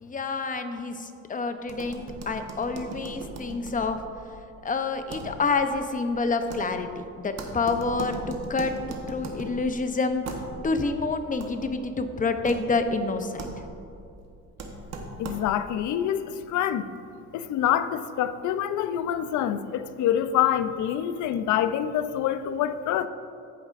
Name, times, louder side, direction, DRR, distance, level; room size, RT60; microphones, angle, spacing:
voice 1, 0.0-4.0 4.6-13.5, left 3 dB, 25° left, 7 dB, 0.6 m, -28 dB
sound 1, 1.6-15.7, right 2 dB, 60° right, 1.1 m, -40 dB
voice 2, 15.2-16.8 17.3-23.1, left 10 dB, 75° left, 12 dB, 0.5 m, -26 dB
14.5 x 5.0 x 2.5 m, 2.6 s
cardioid pair, 90°, 30 cm